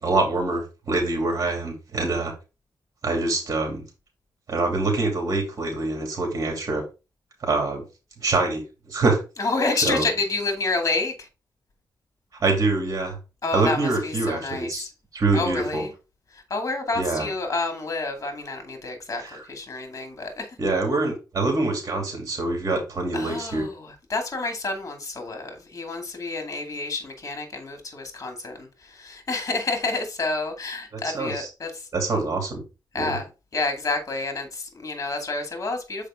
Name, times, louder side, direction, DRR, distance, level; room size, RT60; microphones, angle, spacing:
voice 1, 0.0-2.3 3.0-3.8 4.5-6.8 7.4-7.8 8.2-9.2 9.8-10.0 12.4-13.2 13.5-15.8 16.9-17.3 19.2-19.4 20.6-23.6 30.9-31.5 31.9-32.6 32.9-33.2, right 3 dB, 45° right, 2.7 m, -25 dB
voice 2, 9.4-11.3 13.4-14.9 15.3-15.9 16.3-20.5 23.1-31.9 32.9-33.3 33.5-36.1, left 3 dB, 45° left, 2.3 m, -29 dB
6.5 x 4.9 x 3.6 m
cardioid pair, 85°, 8 cm